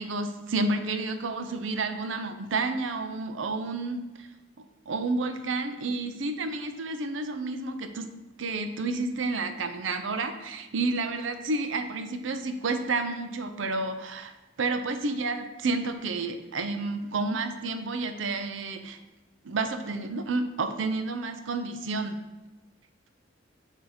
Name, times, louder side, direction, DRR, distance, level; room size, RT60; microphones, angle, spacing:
voice 1, 0.0-4.3 4.9-8.1 8.4-14.3 14.6-19.0 19.4-22.2, right 3 dB, 75° right, 8 dB, 0.6 m, -30 dB
6.9 x 2.9 x 5.0 m, 1.1 s
head